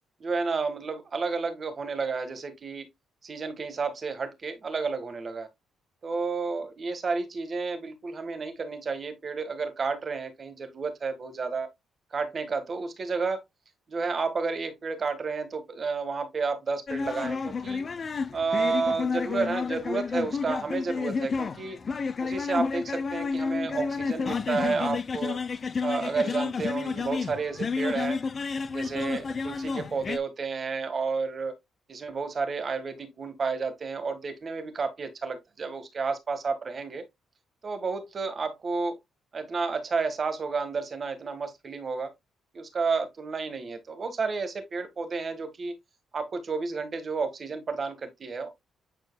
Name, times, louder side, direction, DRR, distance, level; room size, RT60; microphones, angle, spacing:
voice 1, 0.2-2.8 3.2-5.5 6.0-11.7 12.1-13.4 13.9-17.8 18.3-21.8 22.2-25.4 25.8-28.2 28.7-31.5 31.9-37.0 37.6-39.0 39.3-42.1 42.5-45.7 46.1-48.5, right 4 dB, 40° right, 1.6 m, -31 dB
sound 1, 16.9-30.2, left 5 dB, 40° left, 0.7 m, -31 dB
9.2 x 4.5 x 2.3 m
cardioid pair, 90°, 0 cm